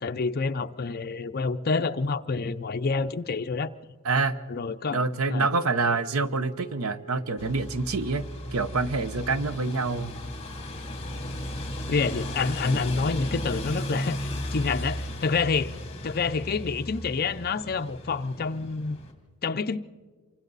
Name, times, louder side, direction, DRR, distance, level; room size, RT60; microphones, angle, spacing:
voice 1, 0.0-3.7 4.5-5.0 5.3-5.5 11.9-15.8 16.0-19.0 19.4-19.8, left 4 dB, 45° left, 0.6 m, -28 dB
voice 2, 4.0-4.4 4.9-8.3 8.5-10.1, right 3 dB, 90° right, 0.9 m, -26 dB
Wind instrument woodwind instrument, 5.5-9.7, right 10 dB, 20° right, 2.6 m, -49 dB
sound 1, 7.4-19.1, left 1 dB, 30° left, 2.8 m, -35 dB
27.5 x 24.5 x 4.1 m
head